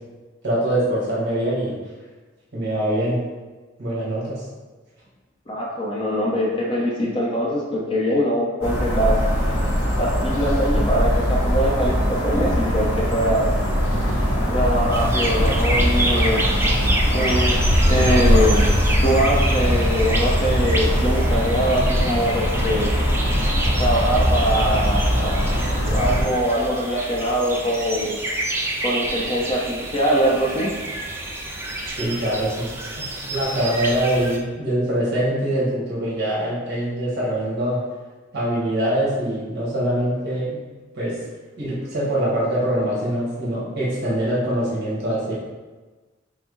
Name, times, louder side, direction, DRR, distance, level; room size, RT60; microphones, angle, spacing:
voice 1, 0.4-1.8 2.5-3.2 3.8-4.4 31.9-32.7 33.3-37.8 38.3-40.6 40.9-41.1 41.6-45.3, right 1 dB, 60° right, -7 dB, 1.4 m, -23 dB
voice 2, 5.5-9.2 10.0-13.5 14.5-16.4 17.1-18.7 19.0-22.9 23.8-25.5 25.8-28.2 28.8-30.7, equal, 25° left, -3 dB, 0.7 m, -23 dB
sound 1, 8.6-26.2, equal, 75° left, 1.3 m, -21 dB
sound 2, 14.9-34.4, right 1 dB, 10° right, 0.4 m, -29 dB
6.1 x 2.0 x 3.8 m, 1.3 s
head